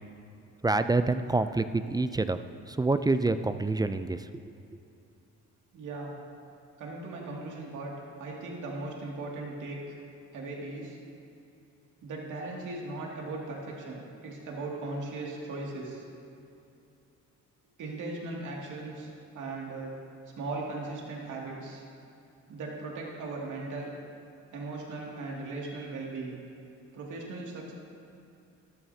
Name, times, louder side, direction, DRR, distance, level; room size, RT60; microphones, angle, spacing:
voice 1, 0.6-2.4 2.7-4.2, right 3 dB, 15° right, 11 dB, 0.3 m, -27 dB
voice 2, 5.7-6.1 6.8-7.9 8.2-10.0 10.3-11.0 12.0-16.0 17.8-19.1 19.3-19.9 20.4-21.8 22.5-23.9 24.5-26.4 26.9-27.7, right 2 dB, 80° right, -3 dB, 2.3 m, -38 dB
13.5 x 12.5 x 2.8 m, 2.7 s
cardioid pair, 90°, 30 cm